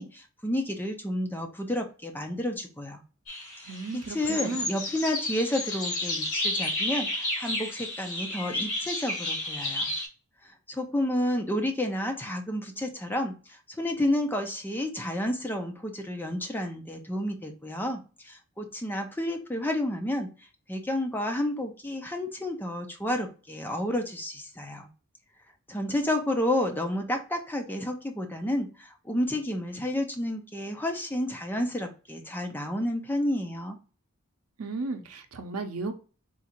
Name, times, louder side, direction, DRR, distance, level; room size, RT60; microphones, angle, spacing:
voice 1, 0.0-3.0 3.9-9.9 10.7-13.3 13.8-20.3 20.7-24.9 25.7-33.8, left 1 dB, 10° left, 4 dB, 0.5 m, -30 dB
sound 1, 3.3-10.1, left 1 dB, 70° left, 1.9 m, -32 dB
voice 2, 3.7-4.7 34.6-35.9, right 3 dB, 80° right, 7 dB, 0.6 m, -34 dB
3.8 x 2.4 x 4.3 m, 0.35 s
head